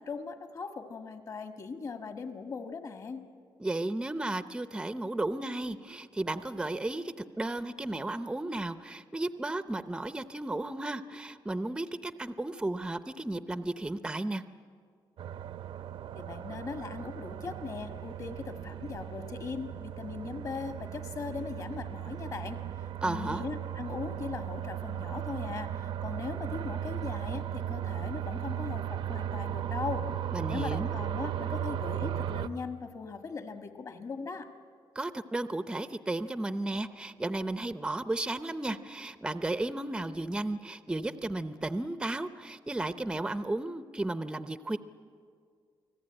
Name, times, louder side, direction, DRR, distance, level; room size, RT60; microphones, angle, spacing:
voice 1, 0.0-3.2 16.1-22.6 23.0-30.0 30.5-34.5, left 5 dB, 40° left, 6 dB, 1.6 m, -39 dB
voice 2, 3.6-14.4 23.0-23.4 30.3-30.9 35.0-44.8, right 2 dB, 10° right, 11 dB, 0.6 m, -34 dB
sound 1, 15.2-32.5, right 10 dB, 80° right, 0.8 m, -36 dB
29.0 x 19.5 x 8.9 m, 2.2 s
wide cardioid pair, 155°, 9 cm